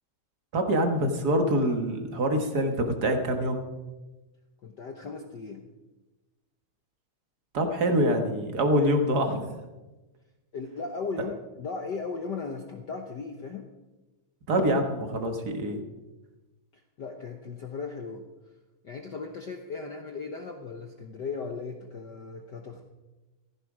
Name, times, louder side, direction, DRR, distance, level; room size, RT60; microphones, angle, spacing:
voice 1, 0.5-3.6 7.5-9.6 14.5-15.8, equal, 40° right, 5 dB, 1.6 m, -25 dB
voice 2, 4.6-5.7 10.5-13.7 17.0-18.2 18.8-22.9, left 4 dB, 70° left, 4 dB, 1.0 m, -37 dB
15.5 x 15.0 x 5.0 m, 1.1 s
omnidirectional pair, 3.4 m